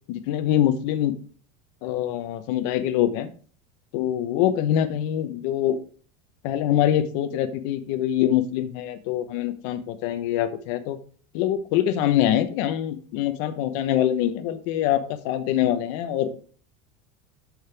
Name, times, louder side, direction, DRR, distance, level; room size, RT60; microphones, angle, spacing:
voice 1, 0.1-1.1 1.8-3.3 3.9-5.8 6.4-11.0 11.3-16.4, left 11 dB, 60° left, 10 dB, 1.0 m, -24 dB
8.5 x 6.5 x 3.4 m, 0.42 s
cardioid pair, 165°, 18 cm